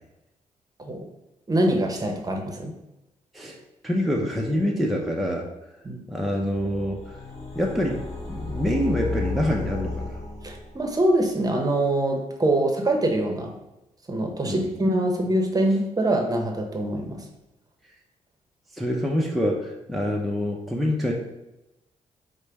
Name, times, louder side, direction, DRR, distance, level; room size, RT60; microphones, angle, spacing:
voice 1, 1.5-2.7 5.8-6.0 10.4-13.5 14.1-17.2, right 1 dB, 30° right, 2 dB, 0.9 m, -24 dB
voice 2, 3.8-5.5 6.1-7.1 7.5-10.2 14.4-14.7 18.7-21.1, equal, ahead, -1 dB, 0.7 m, -26 dB
sound 1, 6.5-11.1, left 3 dB, 50° left, 1.4 m, -33 dB
4.8 x 2.2 x 4.5 m, 0.94 s
cardioid pair, 65°, 14 cm